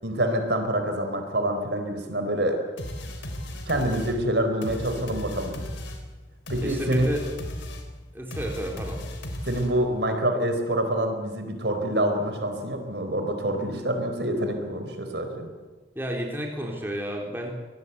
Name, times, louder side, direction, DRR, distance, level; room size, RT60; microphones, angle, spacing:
voice 1, 0.0-2.6 3.7-5.6 6.5-7.1 9.4-15.5, right 1 dB, 70° right, 6 dB, 4.1 m, -26 dB
sound 1, 2.8-10.0, equal, 90° left, 3.8 m, -36 dB
voice 2, 6.6-7.2 8.1-9.0 16.0-17.5, equal, 10° right, 0 dB, 3.8 m, -31 dB
25.5 x 19.0 x 8.2 m, 1.3 s
head